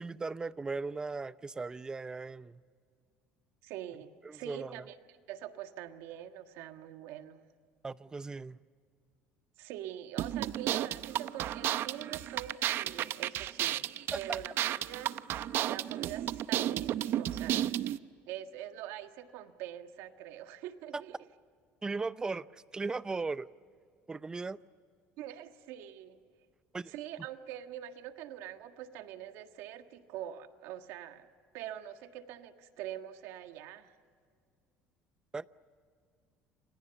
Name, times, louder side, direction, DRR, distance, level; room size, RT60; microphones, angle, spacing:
voice 1, 0.0-2.6 4.2-4.8 7.8-8.6 14.1-14.4 20.9-21.0 21.8-23.5 24.1-24.6 26.7-26.9 35.3-35.5, right 4 dB, 15° right, 0.6 m, -37 dB
voice 2, 3.6-4.9 5.3-7.4 9.6-13.9 14.1-15.1 15.6-17.8 18.3-21.2 25.2-26.2 26.9-31.3 31.5-33.9, right 11 dB, 80° right, 1.6 m, -44 dB
sound 1, 10.2-18.0, right 12 dB, 55° right, 0.7 m, -33 dB
30.0 x 27.5 x 7.0 m
cardioid pair, 130°, 5 cm